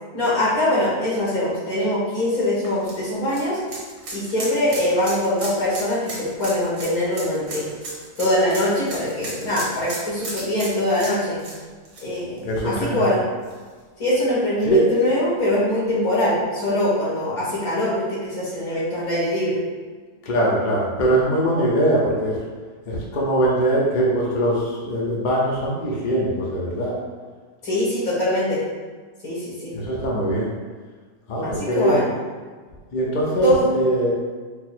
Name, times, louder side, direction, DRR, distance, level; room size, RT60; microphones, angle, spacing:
voice 1, 0.1-3.6 4.1-7.7 8.2-11.4 12.0-13.2 14.0-19.6 27.6-28.6 29.2-29.7 31.4-32.1 33.4-33.7, left 1 dB, 65° left, -8 dB, 1.9 m, -22 dB
sound 1, 2.3-13.1 13.4-13.5 15.0-15.1, right 2 dB, 85° right, 1.6 m, -35 dB
voice 2, 12.4-13.2 14.6-14.9 20.3-22.4 22.9-26.9 29.7-30.5 31.3-32.1 32.9-34.1, right 1 dB, 45° left, -4 dB, 0.6 m, -22 dB
4.5 x 2.0 x 4.3 m, 1.5 s
omnidirectional pair, 1.6 m